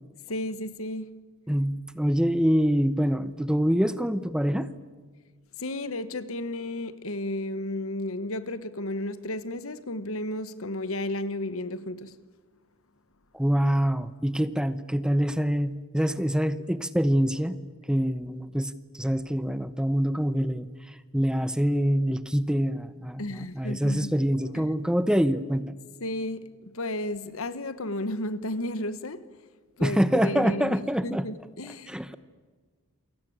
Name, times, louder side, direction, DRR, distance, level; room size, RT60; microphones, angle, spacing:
voice 1, 0.3-1.2 5.6-12.2 23.2-24.1 24.5-24.7 26.0-29.4 29.8-32.1, left 1 dB, 75° left, 1.4 m, -33 dB
voice 2, 1.5-4.7 13.3-17.6 17.9-25.7 29.8-31.2 31.9-32.1, equal, 5° right, 0.9 m, -25 dB
29.0 x 23.0 x 8.7 m
head